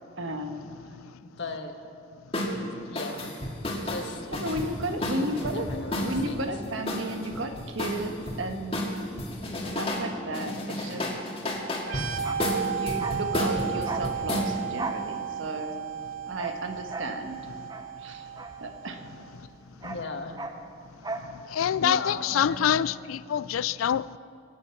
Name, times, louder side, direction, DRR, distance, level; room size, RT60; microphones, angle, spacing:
voice 1, 0.2-0.6 4.3-5.7 6.0-8.8 9.8-11.1 12.5-15.8 16.2-17.4 18.0-18.3 18.6-19.2, right 1 dB, 75° right, 1.4 m, -34 dB
voice 2, 1.2-1.7 2.4-3.4 3.8-4.2 5.0-6.5 19.8-20.4 21.8-22.9, left 2 dB, 60° left, 1.5 m, -37 dB
sound 1, 2.3-2.5 3.0-6.3 6.9-8.4 8.7-10.1 10.3-14.5, left 1 dB, 30° left, 2.1 m, -31 dB
sound 2, 11.8-19.3, right 8 dB, 90° right, 0.9 m, -34 dB
Bark, 12.1-19.2 19.4-21.4 21.6-21.8, right 2 dB, 20° right, 0.8 m, -39 dB
voice 3, 21.5-24.2, left 9 dB, 90° left, 0.4 m, -25 dB
23.5 x 9.8 x 5.9 m
head